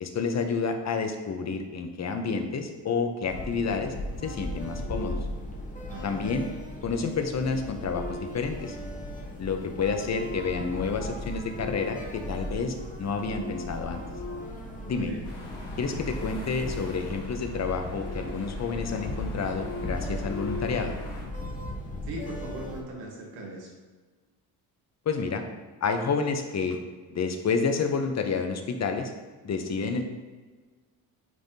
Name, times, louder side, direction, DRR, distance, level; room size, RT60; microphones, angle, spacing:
voice 1, 0.0-3.9 4.2-5.2 6.0-6.5 6.8-8.8 9.4-14.0 14.9-15.1 15.8-20.9 25.1-25.4 25.8-26.8 27.1-29.1 29.4-30.0, left 5 dB, 35° left, 6 dB, 0.9 m, -29 dB
sound 1, 3.2-22.8, left 1 dB, 15° left, 1.1 m, -36 dB
voice 2, 5.8-6.2 14.6-15.3 22.1-23.7, right 1 dB, 80° right, -2 dB, 1.5 m, -40 dB
sound 2, 15.2-21.2, left 2 dB, 75° left, 1.8 m, -45 dB
9.4 x 3.5 x 2.8 m, 1.4 s
supercardioid pair, 70°, 45 cm